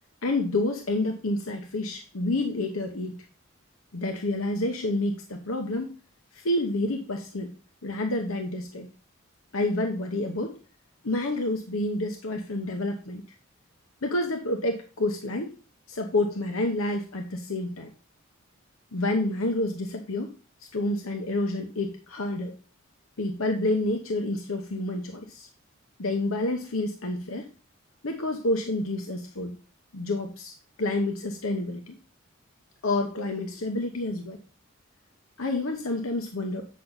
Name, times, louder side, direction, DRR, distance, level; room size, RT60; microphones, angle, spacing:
voice 1, 0.2-3.2 3.9-5.9 6.3-7.5 7.8-8.9 9.5-10.6 11.0-13.2 14.0-15.5 15.9-17.9 18.9-20.3 20.6-22.5 23.2-25.5 26.0-27.5 28.0-29.6 29.9-32.0 32.8-34.4 35.4-36.7, left 2 dB, 85° left, 4 dB, 0.9 m, -29 dB
8.4 x 5.9 x 4.0 m, 0.36 s
head